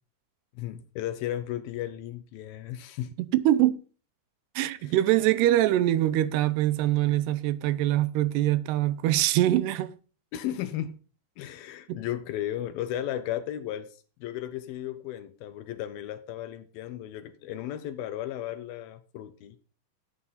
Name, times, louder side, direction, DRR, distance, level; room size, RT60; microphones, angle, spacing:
voice 1, 0.6-3.1 4.9-5.0 10.3-10.9 11.4-13.9 14.2-19.6, left 12 dB, 75° left, 2.4 m, -35 dB
voice 2, 3.2-3.8 4.6-9.9 11.9-12.0, right 14 dB, 90° right, 2.8 m, -24 dB
13.0 x 8.6 x 4.0 m
omnidirectional pair, 4.7 m